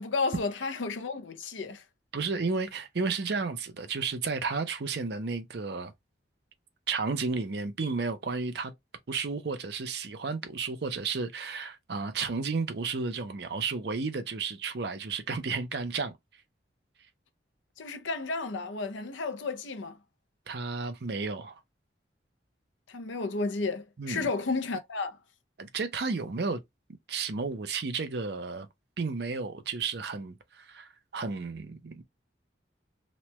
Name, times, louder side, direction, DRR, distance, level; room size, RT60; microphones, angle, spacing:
voice 1, 0.0-1.8 17.8-20.0 22.9-25.2, left 3 dB, 90° left, 0.6 m, -32 dB
voice 2, 2.1-5.9 6.9-8.7 9.1-16.1 20.5-21.6 24.0-24.3 25.6-26.6 27.1-28.7 29.0-32.0, right 4 dB, 60° right, 0.5 m, -32 dB
3.0 x 2.2 x 2.9 m
head